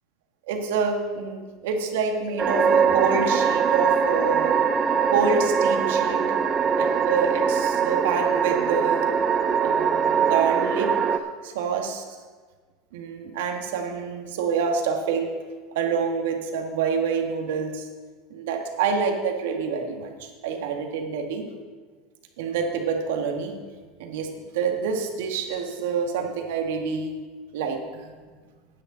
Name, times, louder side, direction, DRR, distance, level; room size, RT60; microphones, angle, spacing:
voice 1, 0.5-4.6 5.1-6.2 6.8-9.1 9.6-12.0 12.9-15.4 15.7-17.9 18.3-21.4 22.4-23.5 24.0-27.2 27.5-28.1, right 5 dB, 85° right, 3 dB, 1.8 m, -27 dB
sound 1, 2.4-11.2, right 6 dB, 20° right, 0.5 m, -22 dB
15.0 x 9.7 x 4.0 m, 1.5 s
supercardioid pair, 175°, 0 cm